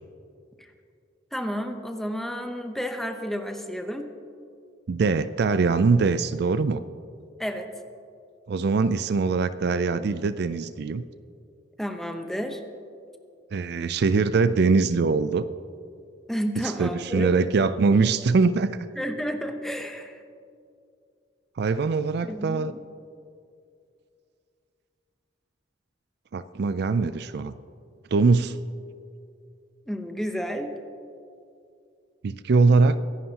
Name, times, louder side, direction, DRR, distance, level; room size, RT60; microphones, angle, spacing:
voice 1, 1.3-4.1 7.4-7.7 11.8-12.6 16.3-17.3 19.0-20.2 22.2-22.7 29.9-30.7, equal, ahead, 5 dB, 0.9 m, -31 dB
voice 2, 4.9-6.8 8.5-11.0 13.5-15.4 16.8-18.7 21.6-22.7 26.3-27.5 28.1-28.6 32.2-33.0, right 4 dB, 60° right, 13 dB, 0.4 m, -22 dB
23.5 x 11.0 x 2.9 m, 2.4 s
head